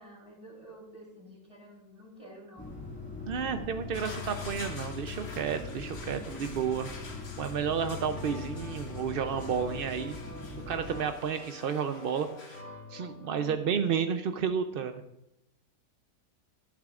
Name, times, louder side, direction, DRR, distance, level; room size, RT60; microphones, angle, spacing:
voice 1, 0.0-2.9 3.4-3.5 13.3-13.8, equal, 20° right, -2 dB, 3.5 m, -50 dB
sound 1, 2.6-11.0, left 4 dB, 5° left, 2.1 m, -41 dB
voice 2, 3.3-7.0 7.4-10.2 10.7-12.6 12.9-15.0, right 7 dB, 65° right, 8 dB, 0.5 m, -31 dB
sound 2, 3.9-12.6, left 3 dB, 45° left, 1.4 m, -48 dB
sound 3, 8.2-13.5, left 3 dB, 70° left, 3.4 m, -47 dB
12.0 x 12.0 x 2.4 m, 0.84 s
omnidirectional pair, 1.6 m